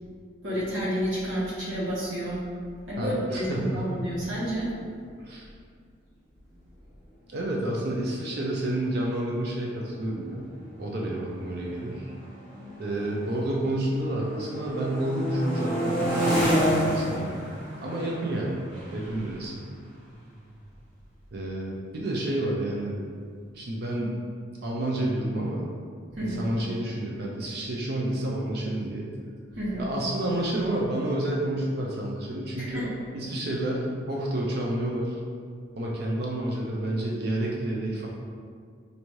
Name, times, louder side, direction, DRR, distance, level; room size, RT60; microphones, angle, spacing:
voice 1, 0.4-2.4 2.9-4.7 26.2-26.5 29.6-29.9 32.6-32.9, equal, 70° right, -9 dB, 1.3 m, -30 dB
voice 2, 3.0-3.9 5.2-5.5 7.3-10.4 10.8-12.1 12.8-17.5 17.8-18.6 18.9-19.7 21.3-23.0 23.5-24.2 24.6-25.7 26.2-29.2 29.8-32.9 33.1-35.2 35.8-38.1, right 1 dB, 50° right, -3 dB, 0.5 m, -29 dB
sound 1, 8.3-8.4 8.6-9.0 9.8-13.7 14.0-20.7, equal, 20° right, 1.3 m, -31 dB
4.8 x 2.6 x 3.0 m, 2.1 s
head